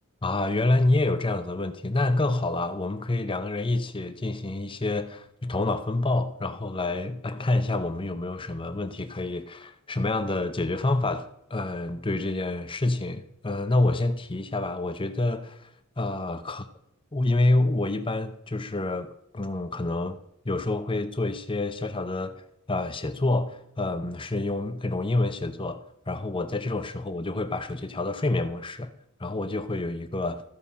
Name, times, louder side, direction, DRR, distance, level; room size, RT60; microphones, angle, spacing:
voice 1, 0.2-15.7 16.0-16.6 17.1-20.2 20.4-22.4 22.7-25.8 26.1-28.9 29.2-30.4, left 2 dB, 25° left, 0.7 m, -27 dB
14.5 x 4.9 x 5.6 m
head